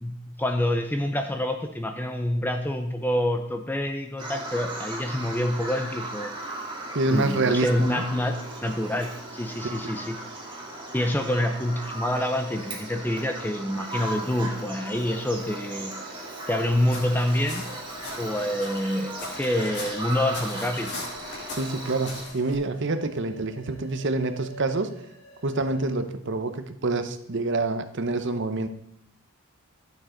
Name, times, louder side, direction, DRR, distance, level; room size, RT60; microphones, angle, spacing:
voice 1, 0.0-6.3 7.1-10.2 10.9-15.9 16.5-17.6 18.2-20.9, left 1 dB, 10° left, 5 dB, 0.6 m, -27 dB
Bird vocalization bird call bird song, 4.2-22.2, right 2 dB, 20° right, 2.0 m, -37 dB
voice 2, 6.9-7.9 9.6-9.7 21.5-24.9 25.4-28.7, right 2 dB, 55° right, 10 dB, 0.8 m, -27 dB
sound 1, 12.3-26.0, left 1 dB, 75° left, 3.6 m, -48 dB
sound 2, 16.8-22.5, left 2 dB, 50° left, 3.1 m, -40 dB
14.0 x 7.2 x 3.9 m, 0.72 s
head